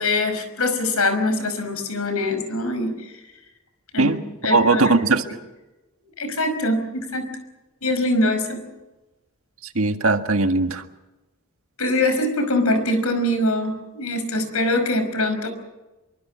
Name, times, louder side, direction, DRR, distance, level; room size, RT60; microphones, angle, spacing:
voice 1, 0.0-3.1 3.9-5.0 6.2-7.3 7.8-8.6 11.8-15.5, left 2 dB, 85° left, 8 dB, 5.4 m, -23 dB
voice 2, 4.5-5.2 9.8-10.8, right 3 dB, 75° right, 6 dB, 1.8 m, -19 dB
26.0 x 23.5 x 6.3 m, 1.1 s
head